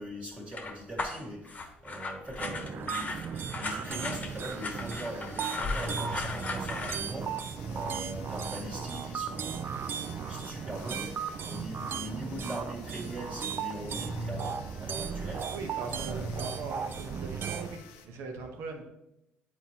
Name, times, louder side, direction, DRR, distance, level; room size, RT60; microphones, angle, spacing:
voice 1, 0.0-15.5 15.9-16.8, equal, 30° right, -2 dB, 1.9 m, -41 dB
sound 1, 0.5-7.0, left 3 dB, 35° left, 1.0 m, -37 dB
sound 2, 2.4-17.8, right 6 dB, 50° right, 0.4 m, -36 dB
sound 3, 4.1-18.1, left 7 dB, 90° left, 0.6 m, -53 dB
voice 2, 15.5-18.8, right 4 dB, 70° right, 4 dB, 1.0 m, -40 dB
7.8 x 4.4 x 2.9 m, 0.88 s
supercardioid pair, 70°, 5 cm